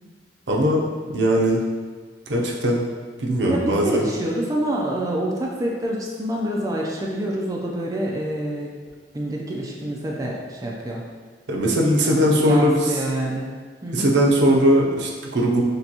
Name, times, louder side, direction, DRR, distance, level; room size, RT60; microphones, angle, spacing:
voice 1, 0.5-1.6 2.3-2.9 3.2-4.1 11.5-13.0 13.9-15.6, equal, 70° right, -1 dB, 0.6 m, -19 dB
voice 2, 3.5-8.7 9.1-11.0 12.1-13.5 13.8-14.1, right 1 dB, 20° right, -2 dB, 0.4 m, -27 dB
6.5 x 2.3 x 2.9 m, 1.5 s
head